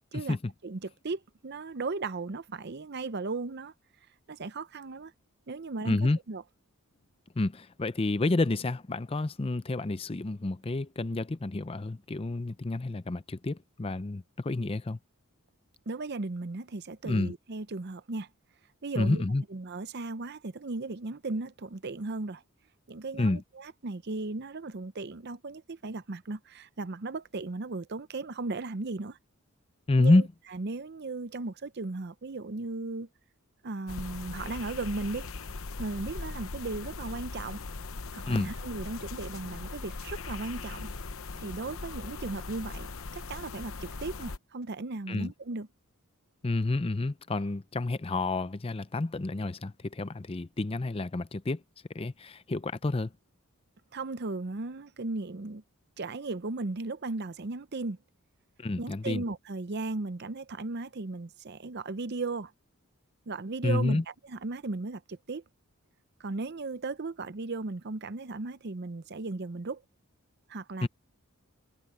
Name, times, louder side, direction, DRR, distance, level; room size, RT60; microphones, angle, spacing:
voice 1, 0.6-3.7 4.3-5.1 5.5-6.0 6.3-6.4 15.9-18.3 18.8-19.2 19.5-22.4 22.9-29.2 30.0-30.2 30.5-33.1 33.6-35.3 35.8-37.6 38.1-40.9 41.4-42.9 43.1-45.7 53.9-55.6 56.0-58.0 58.8-62.5 63.3-64.0 64.3-65.4 66.2-69.8 70.5-70.9, right 3 dB, 50° right, 0.7 m, -36 dB
voice 2, 5.8-6.2 7.4-15.0 17.0-17.3 19.0-19.4 23.2-23.4 29.9-30.3 38.3-38.5 45.1-45.3 46.4-51.6 51.9-53.1 58.6-59.2 63.6-64.0 70.8-70.9, left 2 dB, 25° left, 0.5 m, -29 dB
sound 1, 33.9-44.4, left 3 dB, 65° left, 0.9 m, -40 dB
head